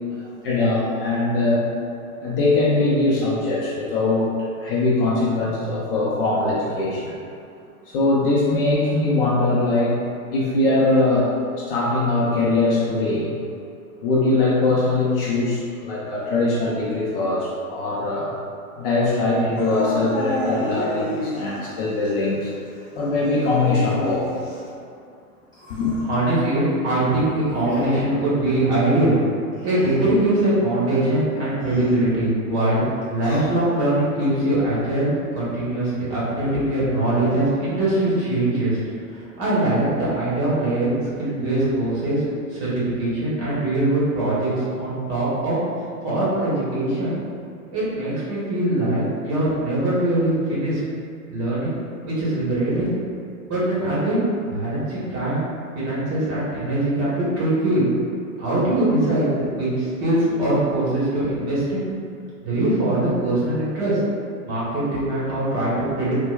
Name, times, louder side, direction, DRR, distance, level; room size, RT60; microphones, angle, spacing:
voice 1, 0.1-1.7 2.2-7.2 7.9-10.0 10.3-11.3 11.6-13.3 14.0-18.3 18.8-22.5 22.9-24.3 25.7-26.0, left 2 dB, 40° left, -6 dB, 0.5 m, -21 dB
Dog / Siren, 19.6-21.7 22.1-22.2 23.2-24.7, left 1 dB, 80° left, 0.9 m, -29 dB
sound 1, 24.7-24.8 25.5-26.2 26.6-26.9 27.5-28.2 29.5-30.3 31.4-32.0 33.0-33.9 34.5-35.1, left 1 dB, 10° left, 1.0 m, -38 dB
voice 2, 25.8-29.2 29.6-32.8 33.1-38.8 39.1-42.2 42.5-45.6 46.0-47.2 47.7-50.8 51.3-51.7 52.0-53.0 53.5-55.5 55.7-57.9 58.4-61.9 62.4-64.0 64.4-66.1, right 1 dB, 30° right, -8 dB, 1.3 m, -22 dB
4.2 x 2.2 x 2.3 m, 2.4 s
hypercardioid pair, 125°, 45 cm